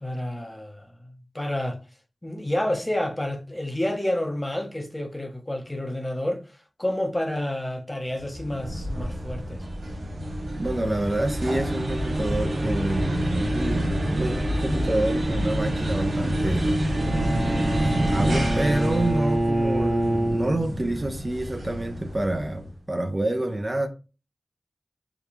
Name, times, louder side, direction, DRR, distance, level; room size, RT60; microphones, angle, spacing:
voice 1, 0.0-1.8 2.2-9.7 17.3-17.8, left 1 dB, 20° left, 0.5 m, -30 dB
sound 1, 8.2-22.7, right 1 dB, 90° right, 0.6 m, -27 dB
voice 2, 10.6-16.8 17.8-23.9, right 1 dB, 30° right, 0.4 m, -28 dB
Bowed string instrument, 16.9-21.0, right 1 dB, 50° right, 0.8 m, -26 dB
2.8 x 2.2 x 2.5 m
cardioid pair, 45°, 0 cm